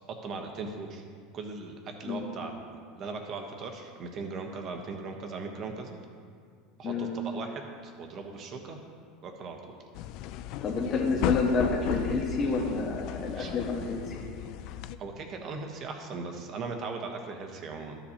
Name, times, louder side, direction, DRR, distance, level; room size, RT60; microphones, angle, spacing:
voice 1, 0.2-1.0 1.3-6.0 6.8-8.8 9.2-9.6 13.3-13.5 15.0-18.0, right 4 dB, 45° right, 3 dB, 1.2 m, -38 dB
voice 2, 6.8-7.2 10.6-14.1, left 4 dB, 35° left, -2 dB, 1.3 m, -29 dB
sound 1, 9.9-15.0, left 11 dB, 60° left, 0.3 m, -35 dB
12.5 x 7.0 x 2.9 m, 2.1 s
supercardioid pair, 105°, 0 cm